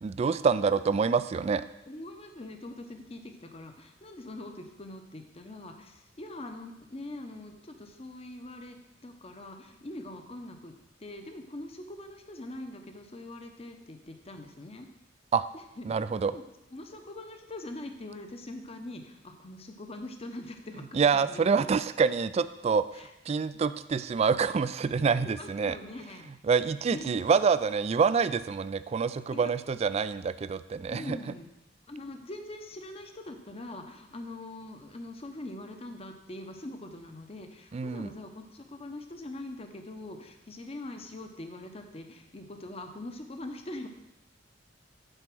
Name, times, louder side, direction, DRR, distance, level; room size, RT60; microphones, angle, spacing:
voice 1, 0.0-1.6 15.3-15.4 15.9-16.3 20.9-22.8 23.3-25.8 26.5-31.2 37.7-38.1, right 5 dB, 35° right, 14 dB, 0.3 m, -26 dB
voice 2, 1.9-8.8 9.0-14.9 15.5-15.9 16.3-16.4 16.7-21.7 22.9-23.1 25.2-26.3 26.6-27.2 29.3-29.5 30.9-31.5 31.9-43.9, left 1 dB, 30° left, 5 dB, 0.8 m, -43 dB
9.0 x 4.7 x 6.1 m, 0.89 s
head